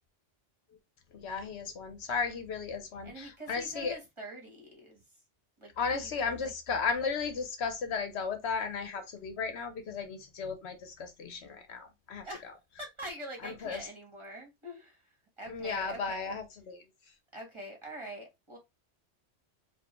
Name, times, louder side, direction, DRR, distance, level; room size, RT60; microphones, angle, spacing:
voice 1, 1.1-4.0 5.8-12.2 13.4-13.8 15.5-16.8, left 5 dB, 70° left, 1.0 m, -35 dB
voice 2, 3.0-5.2 5.6-6.5 12.2-12.5 12.8-16.4 17.3-18.6, equal, 25° right, 1.3 m, -45 dB
4.5 x 2.5 x 3.0 m
omnidirectional pair, 1.2 m